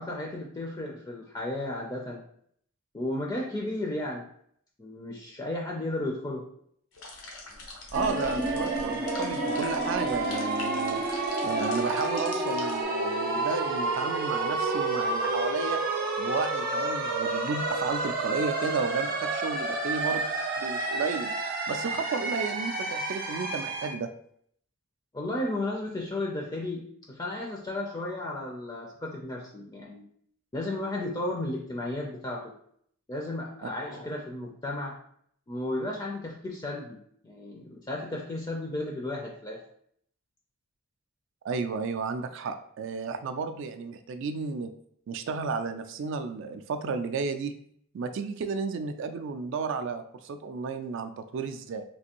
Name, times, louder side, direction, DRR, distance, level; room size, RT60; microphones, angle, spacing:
voice 1, 0.0-2.2 2.9-4.3 4.8-6.4 25.1-30.0 30.5-32.5 33.1-35.0 35.5-39.6, left 1 dB, 20° left, -1 dB, 0.4 m, -34 dB
sound 1, 6.9-12.8, left 2 dB, 90° left, 0.9 m, -43 dB
sound 2, 7.9-23.9, right 2 dB, 45° right, 0.7 m, -30 dB
voice 2, 7.9-11.0 11.4-15.8 16.2-20.2 20.6-21.3 21.7-24.1 33.6-33.7 41.4-44.7 45.1-47.5 47.9-51.8, right 4 dB, 60° right, 8 dB, 0.3 m, -33 dB
3.3 x 2.5 x 2.9 m, 0.66 s
head